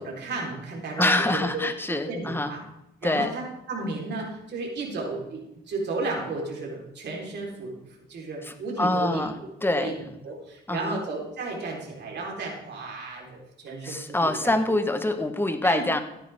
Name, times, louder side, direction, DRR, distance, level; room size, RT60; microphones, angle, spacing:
voice 1, 0.0-2.6 3.0-7.7 8.1-9.2 9.7-10.0 10.2-14.5 15.6-15.8, right 3 dB, 60° right, -2 dB, 4.1 m, -33 dB
voice 2, 1.0-2.5 3.0-3.4 8.4-10.0 10.7-11.0 13.8-16.0, left 2 dB, 10° left, 8 dB, 1.2 m, -25 dB
14.0 x 9.7 x 3.6 m, 0.86 s
cardioid pair, 90°, 20 cm